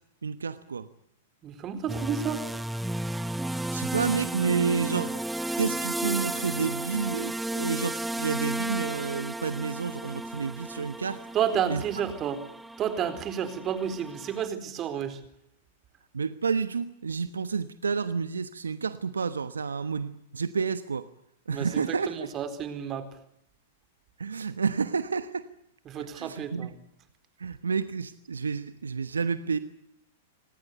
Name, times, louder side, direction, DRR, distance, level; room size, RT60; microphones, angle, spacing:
voice 1, 0.2-0.9 3.7-5.2 5.6-11.2 11.7-11.8 16.1-21.1 21.5-22.3 24.2-25.5 26.0-26.7 27.4-29.6, right 5 dB, 85° right, 13 dB, 1.2 m, -30 dB
voice 2, 1.4-2.4 11.3-12.4 12.8-15.2 21.5-23.1 25.9-26.7, right 8 dB, 30° right, 11 dB, 4.3 m, -31 dB
sound 1, 1.9-14.5, right 1 dB, 5° right, 0.9 m, -33 dB
27.0 x 19.0 x 8.2 m, 0.76 s
hypercardioid pair, 105°, 0 cm